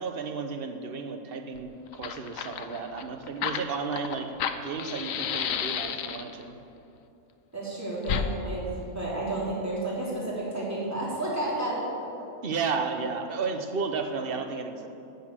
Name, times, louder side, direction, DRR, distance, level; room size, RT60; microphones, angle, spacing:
voice 1, 0.0-4.3 4.6-6.6 12.4-14.9, right 5 dB, 45° right, 5 dB, 1.0 m, -33 dB
Fire, 1.6-1.7 1.9-6.4 8.0-8.3, left 8 dB, 70° left, 1.0 m, -31 dB
voice 2, 7.5-12.1, right 1 dB, 10° right, -7 dB, 3.0 m, -31 dB
13.0 x 7.0 x 7.5 m, 2.7 s
omnidirectional pair, 1.5 m